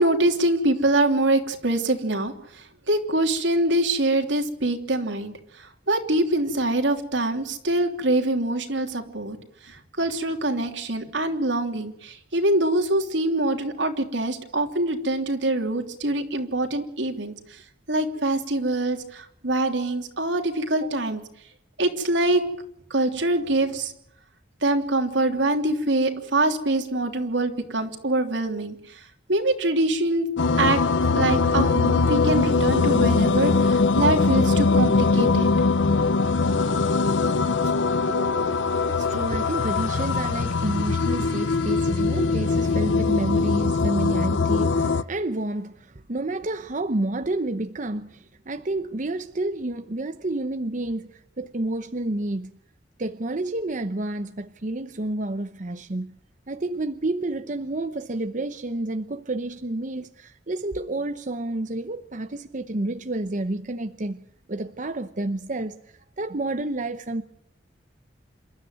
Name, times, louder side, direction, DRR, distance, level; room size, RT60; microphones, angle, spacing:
voice 1, 0.0-9.4 9.6-17.3 17.9-21.2 21.8-22.4 22.9-23.9 24.6-29.0 29.3-30.3 30.6-30.8 31.1-35.5 38.1-38.5, right 2 dB, 85° right, 3.2 m, -24 dB
sound 1, 30.4-45.0, left 4 dB, 90° left, 0.8 m, -22 dB
voice 2, 38.8-52.5 53.0-56.2 56.5-64.2 64.5-65.8 66.2-67.2, right 2 dB, 45° right, 0.9 m, -29 dB
27.5 x 13.0 x 9.4 m
head